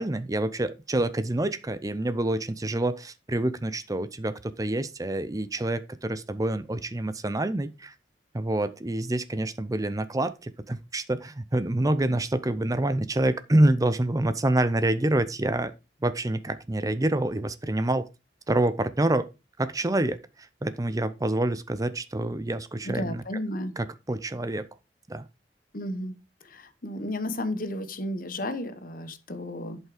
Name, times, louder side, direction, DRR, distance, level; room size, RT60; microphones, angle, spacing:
voice 1, 0.0-7.9 8.3-15.7 16.0-18.1 18.5-19.3 19.6-23.2 23.8-24.7 25.1-25.3, right 1 dB, 20° right, 0.6 m, -27 dB
voice 2, 22.8-23.7 25.7-26.2 26.5-29.8, left 1 dB, 50° left, 1.2 m, -33 dB
11.0 x 5.6 x 5.0 m
head